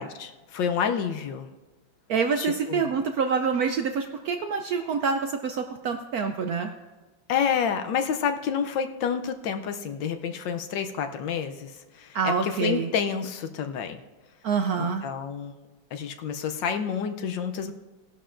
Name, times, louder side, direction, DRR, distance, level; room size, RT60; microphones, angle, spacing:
voice 1, 0.0-1.5 2.4-2.9 7.3-14.0 14.8-15.5 15.9-17.7, left 7 dB, 75° left, 8 dB, 1.4 m, -29 dB
voice 2, 2.1-6.7 12.1-12.9 14.4-15.0, right 5 dB, 70° right, 6 dB, 0.8 m, -26 dB
18.0 x 11.0 x 2.5 m, 1.2 s
omnidirectional pair, 2.1 m